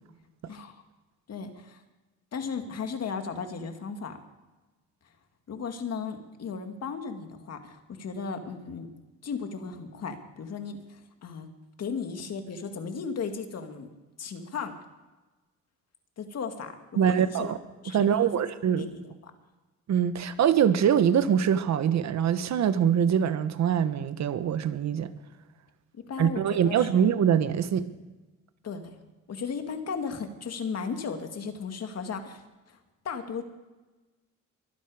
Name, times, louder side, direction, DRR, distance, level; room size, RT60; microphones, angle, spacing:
voice 1, 0.5-0.8 1.3-1.8 2.3-4.2 5.5-8.9 9.2-11.5 11.8-13.9 14.2-14.7 16.2-17.5 17.8-18.3 18.8-19.3 25.9-26.9 28.6-29.0 29.3-32.8 33.0-33.4, left 5 dB, 55° left, 2.1 m, -36 dB
voice 2, 17.0-17.6 17.9-18.9 19.9-25.1 26.2-27.9, right 8 dB, 65° right, 1.3 m, -24 dB
23.0 x 10.5 x 5.0 m
cardioid pair, 90°, 30 cm